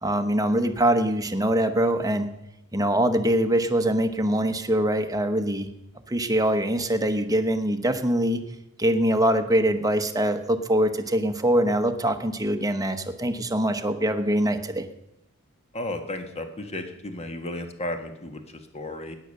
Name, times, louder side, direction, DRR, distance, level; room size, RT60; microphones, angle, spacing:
voice 1, 0.0-2.3 2.7-5.7 6.1-8.4 8.8-14.8, right 1 dB, 15° right, 7 dB, 1.0 m, -23 dB
voice 2, 15.7-19.2, left 1 dB, 30° left, 7 dB, 1.5 m, -34 dB
16.0 x 10.0 x 6.5 m, 0.89 s
head